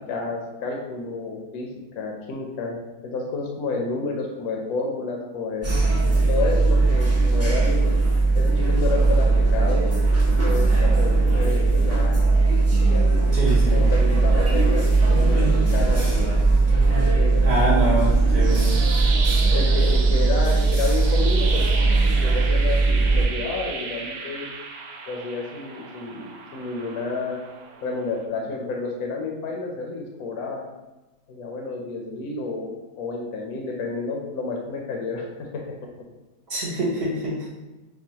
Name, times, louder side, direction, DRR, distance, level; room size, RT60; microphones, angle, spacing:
voice 1, 0.1-2.8 3.0-5.7 6.3-7.8 8.3-9.9 10.3-12.2 12.9-13.3 13.7-16.4 17.2-18.1 19.5-21.8 22.1-24.5 25.1-27.4 27.8-30.6 31.3-35.5, left 3 dB, 70° left, 0 dB, 1.0 m, -30 dB
sound 1, 5.6-23.2, right 3 dB, 25° right, 0.3 m, -19 dB
voice 2, 13.3-13.8 17.4-18.7 36.5-37.5, right 1 dB, 50° right, -6 dB, 0.8 m, -25 dB
sound 2, 18.2-28.2, right 5 dB, 80° right, 1.2 m, -34 dB
6.1 x 2.2 x 2.8 m, 1.1 s
omnidirectional pair, 1.8 m